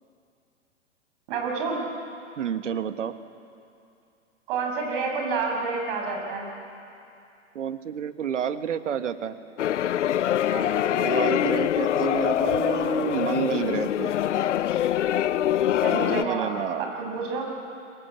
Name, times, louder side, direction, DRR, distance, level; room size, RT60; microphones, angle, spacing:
voice 1, 1.3-1.8 4.5-6.5 10.5-10.7 15.8-16.5 16.8-17.4, right 4 dB, 45° right, 1 dB, 7.2 m, -29 dB
voice 2, 2.4-3.1 7.5-9.3 10.9-14.2 16.0-16.9, right 8 dB, 75° right, 10 dB, 1.5 m, -29 dB
sound 1, 9.6-16.2, left 11 dB, 75° left, 0.7 m, -24 dB
28.0 x 20.5 x 8.2 m, 2.6 s
hypercardioid pair, 135°, 36 cm